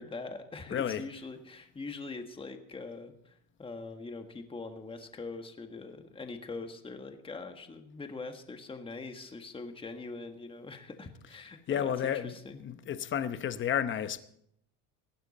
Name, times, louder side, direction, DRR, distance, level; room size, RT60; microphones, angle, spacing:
voice 1, 0.0-12.6, left 3 dB, 15° left, 1.5 m, -43 dB
voice 2, 0.7-1.0 11.7-14.2, left 9 dB, 30° left, 0.9 m, -32 dB
19.0 x 15.5 x 4.2 m
cardioid pair, 135°, 38 cm